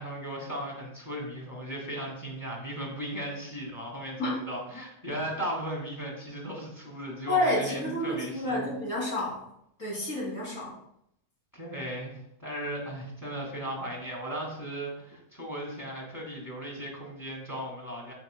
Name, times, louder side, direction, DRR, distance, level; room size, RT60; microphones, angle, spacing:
voice 1, 0.0-8.7 11.5-18.1, right 1 dB, 15° left, -2 dB, 2.7 m, -37 dB
voice 2, 7.3-9.5 9.8-10.8, left 1 dB, 75° left, -4 dB, 3.5 m, -29 dB
9.1 x 8.1 x 2.3 m, 0.74 s
omnidirectional pair, 1.4 m